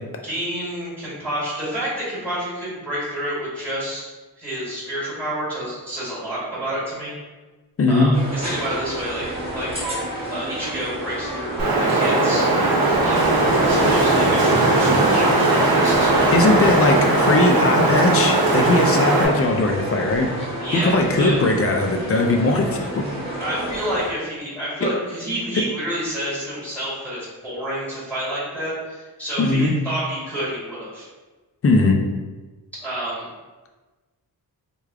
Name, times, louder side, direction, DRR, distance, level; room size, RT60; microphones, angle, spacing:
voice 1, 0.2-4.1 4.4-7.1 7.9-9.3 9.5-12.4 13.0-13.2 13.6-16.7 20.6-21.4 23.4-31.1 32.8-33.2, right 1 dB, 5° left, -9 dB, 1.5 m, -29 dB
voice 2, 7.8-8.1 16.3-20.3 20.8-23.0 24.8-24.9 29.4-29.7 31.6-32.0, left 2 dB, 40° left, 3 dB, 0.4 m, -19 dB
sound 1, 8.1-24.1, right 1 dB, 15° right, 1.0 m, -30 dB
sound 2, 8.9-9.9 12.9-14.2 15.9-17.1, left 1 dB, 85° left, 0.6 m, -34 dB
Wind, 11.6-19.2, right 2 dB, 70° right, 0.9 m, -18 dB
3.3 x 2.3 x 3.5 m, 1.2 s
wide cardioid pair, 145°, 37 cm